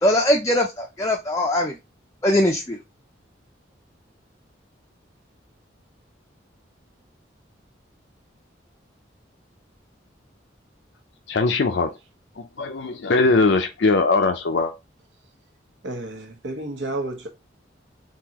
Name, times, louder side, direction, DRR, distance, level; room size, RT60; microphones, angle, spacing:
voice 1, 0.0-1.8 2.2-2.8, left 1 dB, 15° left, 0.4 m, -21 dB
voice 2, 11.3-11.9 12.4-14.7, left 3 dB, 70° left, 0.5 m, -20 dB
voice 3, 15.8-17.3, right 2 dB, 75° right, 1.0 m, -31 dB
3.7 x 2.8 x 2.9 m
head